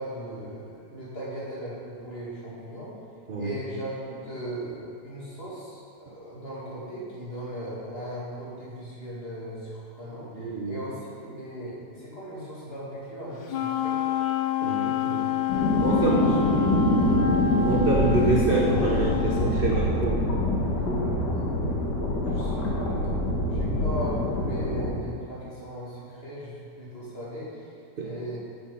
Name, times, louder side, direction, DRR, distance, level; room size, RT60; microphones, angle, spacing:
voice 1, 0.0-2.9 3.4-14.0 15.8-16.4 16.8-17.2 21.3-21.5 22.2-28.4, equal, 35° left, -7 dB, 2.4 m, -38 dB
voice 2, 10.3-10.8 14.6-15.3 15.8-16.2 17.6-20.2 28.0-28.1, right 3 dB, 50° right, -3 dB, 0.7 m, -27 dB
Wind instrument woodwind instrument, 13.5-19.6, left 10 dB, 90° left, 1.4 m, -28 dB
sound 1, 15.5-24.9, left 1 dB, 65° left, 1.8 m, -25 dB
8.3 x 6.9 x 5.4 m, 2.5 s
omnidirectional pair, 2.0 m